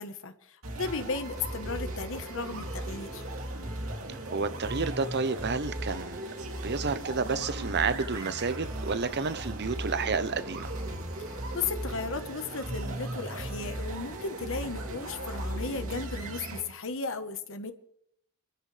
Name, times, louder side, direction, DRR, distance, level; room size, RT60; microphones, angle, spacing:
voice 1, 0.0-3.2 11.2-17.7, left 4 dB, 65° left, 9 dB, 1.3 m, -35 dB
sound 1, 0.6-16.6, right 1 dB, 70° right, 2.9 m, -37 dB
voice 2, 4.1-6.2 6.6-10.7, right 4 dB, 50° right, 13 dB, 0.9 m, -30 dB
25.5 x 13.0 x 3.4 m, 0.73 s
head